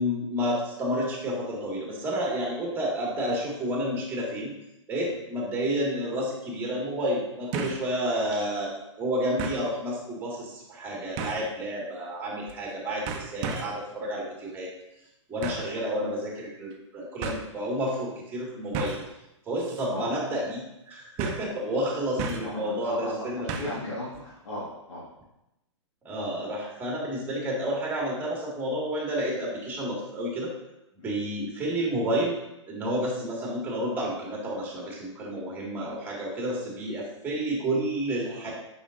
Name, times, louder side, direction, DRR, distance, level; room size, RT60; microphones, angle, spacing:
voice 1, 0.0-4.5 4.9-14.7 15.3-18.9 19.5-23.8 26.0-30.5 31.0-32.4 32.7-38.5, equal, 15° right, -3 dB, 1.9 m, -30 dB
sound 1, 5.6-5.7 7.5-7.9 8.3-8.4 9.4-9.7 11.2-11.5 12.5-12.7 13.1-13.8 15.4-15.7 16.7-16.8 17.2-17.4 18.7-19.1 19.6-19.9 20.1-20.2 21.2-21.5 22.2-22.6 23.5-23.8 24.1-24.2, right 5 dB, 35° right, 0.7 m, -34 dB
voice 2, 22.4-25.1 31.0-31.2 35.8-36.0, left 1 dB, 75° left, -6 dB, 1.7 m, -37 dB
7.0 x 5.5 x 2.5 m, 0.90 s
hypercardioid pair, 135°, 16 cm